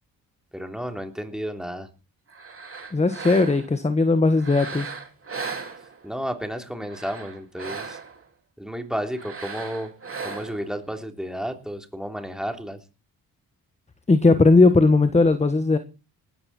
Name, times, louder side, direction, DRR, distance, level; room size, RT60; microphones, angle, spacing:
voice 1, 0.5-1.9 6.0-8.0 8.6-9.9 10.2-12.8, equal, ahead, 3.3 m, -32 dB
sound 1, 2.3-3.8 4.3-6.2 6.8-8.3 9.1-10.7, right 4 dB, 35° right, 3.5 m, -37 dB
voice 2, 2.9-4.9 14.1-15.8, left 3 dB, 15° left, 1.3 m, -18 dB
19.0 x 13.5 x 4.3 m
cardioid pair, 100°, 38 cm